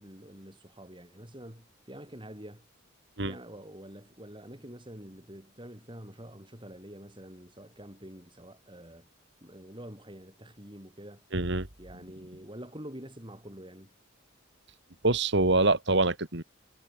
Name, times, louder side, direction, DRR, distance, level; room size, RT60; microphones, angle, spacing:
voice 1, 0.0-2.7 3.2-9.1 9.4-11.3 11.8-13.9, equal, 25° right, 8.0 m, -46 dB
voice 2, 11.3-11.7 15.0-16.4, right 2 dB, 60° right, 2.5 m, -25 dB
head